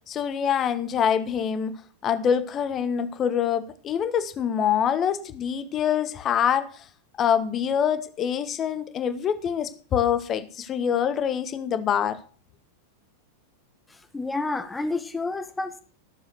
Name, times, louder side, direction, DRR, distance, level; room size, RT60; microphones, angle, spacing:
voice 1, 0.1-1.8 2.0-6.8 7.2-12.2, left 8 dB, 30° left, 1.3 m, -25 dB
voice 2, 13.9-15.8, left 3 dB, 10° left, 0.9 m, -30 dB
13.5 x 7.3 x 6.6 m
figure-of-eight pair, 90°, 0 cm